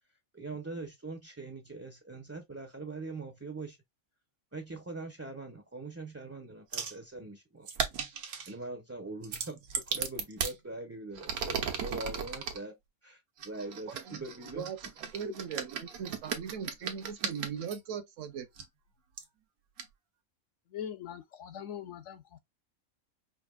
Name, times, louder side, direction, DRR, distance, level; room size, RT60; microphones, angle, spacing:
voice 1, 0.3-3.8 4.5-7.7 8.5-12.8 13.0-14.9, right 3 dB, 25° right, 0.3 m, -42 dB
sound 1, 6.7-7.0 7.7-8.5 9.2-10.6 11.1-12.6 13.4-17.8 18.6-18.7 19.2-19.3 19.8-19.9, right 7 dB, 85° right, 1.3 m, -36 dB
voice 2, 14.5-18.5, right 7 dB, 65° right, 1.0 m, -39 dB
voice 3, 20.7-22.2, left 9 dB, 65° left, 0.9 m, -41 dB
5.1 x 2.6 x 2.3 m
omnidirectional pair, 1.5 m